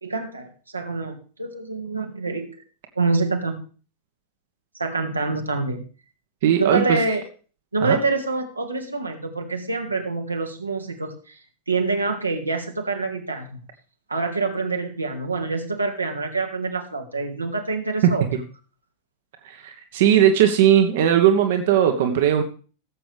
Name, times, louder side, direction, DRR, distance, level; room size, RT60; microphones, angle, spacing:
voice 1, 0.0-2.6 3.0-3.6 4.7-5.9 6.6-7.2 7.7-11.4 11.7-13.6 14.1-18.3, right 3 dB, 80° right, 3 dB, 1.9 m, -26 dB
voice 2, 6.4-7.0 7.8-8.0 18.0-18.1 19.4-22.4, right 9 dB, 55° right, 5 dB, 1.3 m, -18 dB
17.0 x 7.6 x 3.4 m, 0.37 s
figure-of-eight pair, 90°, 0 cm